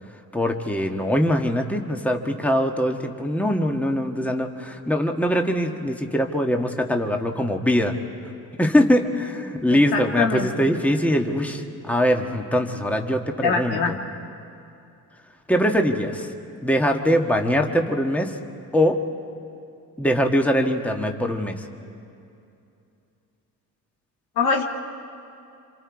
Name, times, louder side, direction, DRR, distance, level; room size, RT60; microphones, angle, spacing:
voice 1, 0.3-7.9 8.6-14.0 15.5-16.3 16.6-18.3 18.7-19.0 20.0-21.6, equal, 5° left, 3 dB, 1.5 m, -22 dB
voice 2, 9.7-10.5 13.4-13.9 24.4-24.6, left 5 dB, 85° left, 1 dB, 2.2 m, -23 dB
27.5 x 26.5 x 4.8 m, 2.7 s
cardioid pair, 95°, 36 cm